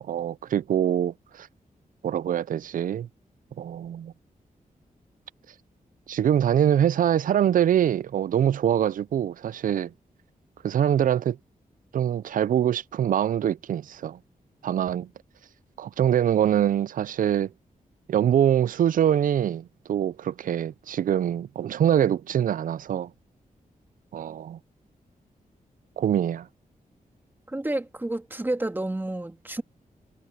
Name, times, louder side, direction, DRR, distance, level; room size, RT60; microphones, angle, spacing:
voice 1, 0.0-1.5 2.0-3.1 3.6-4.1 6.1-9.9 10.6-11.4 11.9-14.2 14.6-15.1 15.8-17.5 18.1-23.1 24.1-24.6 26.0-26.5, right 10 dB, 70° right, 0.4 m, -24 dB
voice 2, 27.5-29.6, right 1 dB, 15° right, 2.5 m, -30 dB
wide cardioid pair, 145°, 14 cm